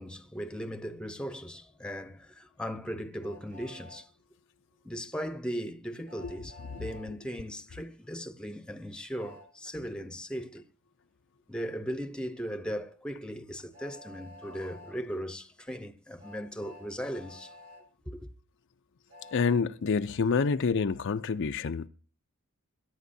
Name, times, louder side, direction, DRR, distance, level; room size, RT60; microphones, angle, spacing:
voice 1, 0.0-4.1 4.8-10.7 11.5-17.5 18.0-18.3, equal, 5° left, 0.9 m, -38 dB
Train, 3.2-4.0 6.1-7.1 9.1-9.5 11.5-11.7 13.7-15.0 16.2-17.8 19.1-19.6, left 1 dB, 85° right, 2.6 m, -50 dB
voice 2, 19.3-21.9, left 5 dB, 55° left, 0.5 m, -27 dB
22.5 x 10.0 x 2.7 m
head